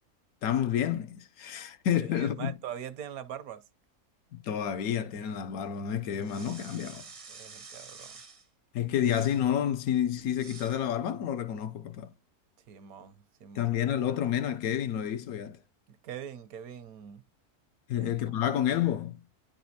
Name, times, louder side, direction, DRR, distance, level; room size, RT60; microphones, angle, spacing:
voice 1, 0.4-2.5 4.3-7.1 8.7-12.1 13.5-15.6 17.9-19.2, left 10 dB, 70° left, 1.0 m, -29 dB
voice 2, 2.0-3.6 7.3-8.1 12.7-13.7 15.9-17.2 18.0-18.1, right 9 dB, 75° right, 1.1 m, -42 dB
sound 1, 6.2-8.5 9.0-9.5 10.3-10.8, right 4 dB, 40° right, 0.5 m, -49 dB
9.9 x 4.2 x 2.7 m
omnidirectional pair, 1.6 m